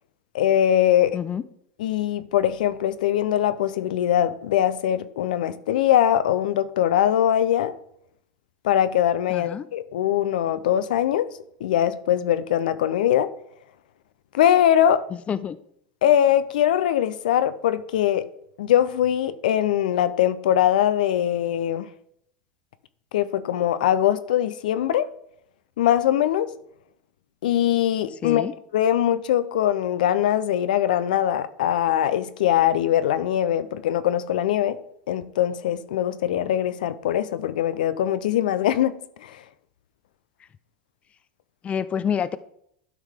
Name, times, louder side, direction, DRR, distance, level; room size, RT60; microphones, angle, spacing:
voice 1, 0.3-1.2 1.8-7.7 8.6-11.3 11.6-13.3 14.3-15.0 16.0-18.3 18.6-21.9 23.1-25.1 25.8-26.5 27.4-28.4 28.7-34.8 35.1-39.4, left 11 dB, 80° left, 0.5 m, -22 dB
voice 2, 9.3-9.7 15.1-15.6 28.2-28.5 41.6-42.4, left 8 dB, 30° left, 0.4 m, -27 dB
12.0 x 4.6 x 3.6 m
hypercardioid pair, 95°, 5 cm